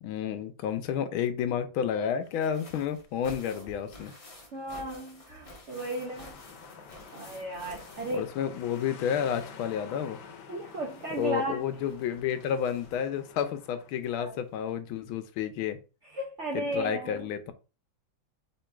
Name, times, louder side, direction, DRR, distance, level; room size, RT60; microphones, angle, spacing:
voice 1, 0.0-4.1 8.1-10.2 11.2-15.8 16.5-17.5, left 8 dB, 85° left, 1.5 m, -31 dB
sound 1, 2.2-9.0 9.2-13.2 14.3-14.4 14.7-14.8, left 1 dB, 35° left, 0.6 m, -51 dB
voice 2, 4.5-6.4 7.1-8.3 10.5-11.7 14.2-14.3 16.1-17.2, right 1 dB, 75° right, 0.6 m, -34 dB
sound 2, 5.7-13.9, left 6 dB, 65° left, 1.2 m, -49 dB
3.9 x 3.0 x 4.4 m
omnidirectional pair, 2.2 m